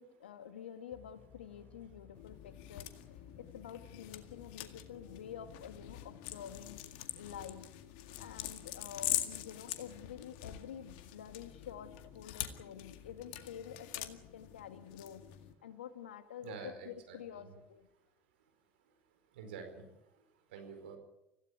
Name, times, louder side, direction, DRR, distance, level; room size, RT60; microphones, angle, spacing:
voice 1, 0.0-6.8 7.2-7.7 8.2-15.2 15.6-17.9, left 9 dB, 85° left, 10 dB, 1.9 m, -49 dB
sound 1, 0.9-6.8, left 8 dB, 40° left, 3.5 m, -59 dB
sound 2, 2.2-15.5, left 14 dB, 70° left, 2.0 m, -44 dB
voice 2, 16.4-17.5 19.3-19.8 20.5-21.0, right 5 dB, 80° right, 7 dB, 4.6 m, -48 dB
25.5 x 16.5 x 9.1 m, 0.89 s
hypercardioid pair, 70°, 6 cm